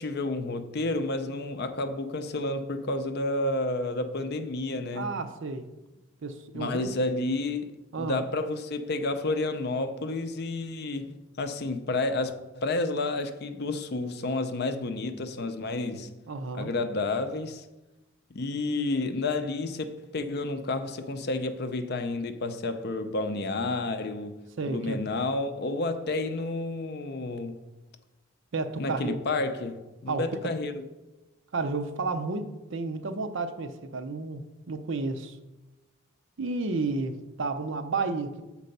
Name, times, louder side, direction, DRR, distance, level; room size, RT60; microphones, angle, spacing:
voice 1, 0.0-5.2 6.5-16.1 16.5-17.7 18.3-24.4 24.7-27.6 28.8-30.8, left 2 dB, 50° left, 0.5 m, -30 dB
voice 2, 4.9-5.7 6.2-6.9 7.9-8.2 16.3-16.7 24.6-25.0 28.5-29.2 30.1-30.2 31.5-35.4 36.4-38.4, right 3 dB, 55° right, 0.5 m, -32 dB
6.6 x 4.6 x 5.3 m
head